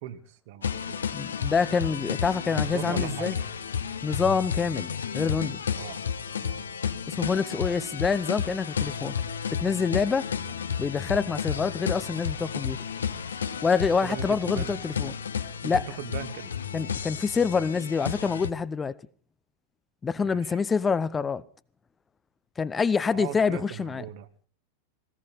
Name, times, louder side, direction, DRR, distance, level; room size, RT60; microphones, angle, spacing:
voice 1, 0.0-1.1 2.5-3.4 5.7-6.0 6.4-6.6 10.4-10.5 13.8-14.9 15.6-16.5 20.2-20.6 23.1-24.3, right 12 dB, 50° right, 1.7 m, -39 dB
sound 1, 0.6-18.5, left 7 dB, 70° left, 1.2 m, -32 dB
voice 2, 1.1-3.4 4.0-5.6 7.1-9.1 9.5-10.3 10.8-12.8 13.6-15.1 15.6-15.8 16.7-18.9 20.0-21.4 22.6-24.0, left 5 dB, 15° left, 0.8 m, -26 dB
19.5 x 17.0 x 4.1 m
figure-of-eight pair, 90°, 0 cm